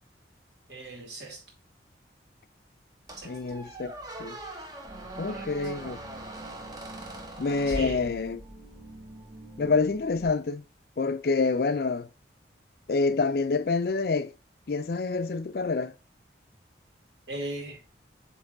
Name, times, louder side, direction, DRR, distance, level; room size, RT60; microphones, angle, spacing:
voice 1, 0.7-1.4 3.2-3.4 5.3-5.7 7.7-8.1 17.3-17.8, right 1 dB, 70° right, 2.2 m, -38 dB
Squeak, 3.1-8.6, right 1 dB, 20° right, 0.9 m, -41 dB
voice 2, 3.2-3.9 4.2-4.4 5.2-6.0 7.4-8.4 9.6-10.6 11.0-12.1 12.9-14.3 14.7-15.9, left 4 dB, 55° left, 0.4 m, -27 dB
sound 1, 4.9-10.3, right 1 dB, 40° right, 3.4 m, -47 dB
7.9 x 3.2 x 3.8 m
head